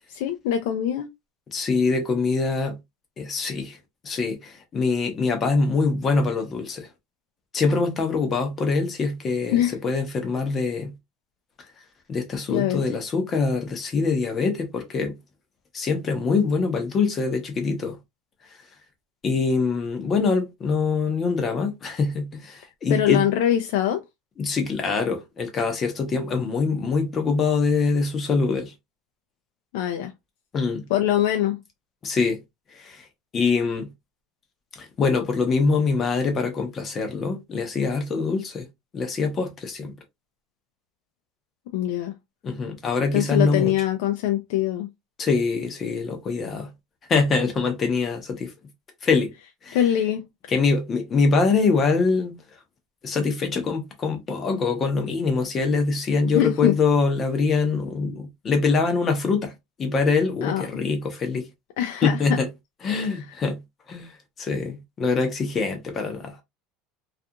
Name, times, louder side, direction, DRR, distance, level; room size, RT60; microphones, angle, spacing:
voice 1, 0.1-1.1 9.5-9.8 12.5-12.8 22.9-24.0 29.7-30.1 30.9-31.6 41.7-42.1 43.1-44.9 49.7-50.3 56.3-56.7 60.4-60.7 61.8-62.4 63.1-63.3, left 11 dB, 80° left, 0.4 m, -23 dB
voice 2, 1.5-2.8 3.2-3.8 4.0-6.9 7.5-10.9 12.1-15.2 15.7-18.0 19.2-23.2 24.4-28.7 30.5-30.9 32.0-32.4 32.7-33.0 33.3-33.9 34.8-38.7 38.9-39.9 42.4-43.7 45.2-46.7 47.1-48.5 49.0-49.3 49.6-49.8 50.5-52.4 53.0-59.5 59.8-61.5 62.0-62.5 62.8-63.6 63.9-66.4, left 4 dB, 25° left, 0.7 m, -24 dB
2.4 x 2.3 x 2.7 m
cardioid pair, 155°, 0 cm